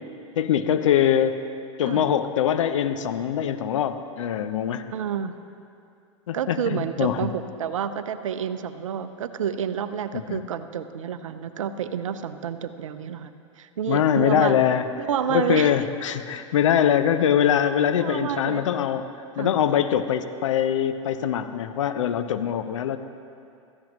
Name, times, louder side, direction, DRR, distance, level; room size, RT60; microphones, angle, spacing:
voice 1, 0.4-1.4 1.8-4.9 6.3-7.2 10.1-10.4 13.9-14.9 15.3-19.1 19.4-23.0, left 9 dB, 70° left, 10 dB, 0.7 m, -23 dB
voice 2, 4.9-5.3 6.3-13.3 13.6-14.5 15.1-15.8 18.0-18.6 19.4-19.5, right 8 dB, 75° right, 11 dB, 0.7 m, -29 dB
16.0 x 14.0 x 3.1 m, 2.5 s
hypercardioid pair, 100°, 17 cm